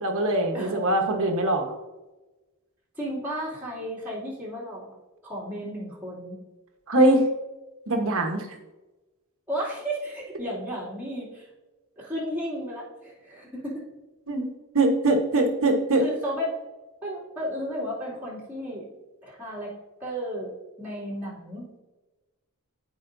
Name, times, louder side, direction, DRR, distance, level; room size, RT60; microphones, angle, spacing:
voice 1, 0.0-1.7 6.9-7.3 7.9-8.5 14.3-16.0, right 1 dB, 65° right, 4 dB, 1.2 m, -22 dB
voice 2, 3.0-5.0 5.2-6.4 9.5-11.5 12.0-13.9 16.0-16.6 17.0-18.8 19.2-19.7 20.0-21.8, equal, 10° right, -8 dB, 2.5 m, -33 dB
13.5 x 4.9 x 2.6 m, 1.1 s
head